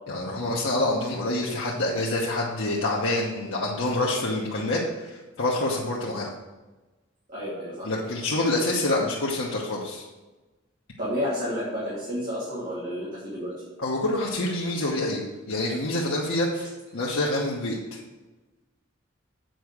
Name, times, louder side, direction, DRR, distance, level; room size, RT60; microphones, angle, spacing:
voice 1, 0.1-6.3 7.8-10.1 13.8-18.0, left 2 dB, 75° left, -5 dB, 1.1 m, -27 dB
voice 2, 7.3-7.9 11.0-13.5, equal, 40° right, -9 dB, 2.6 m, -30 dB
7.9 x 4.7 x 6.6 m, 1.2 s
head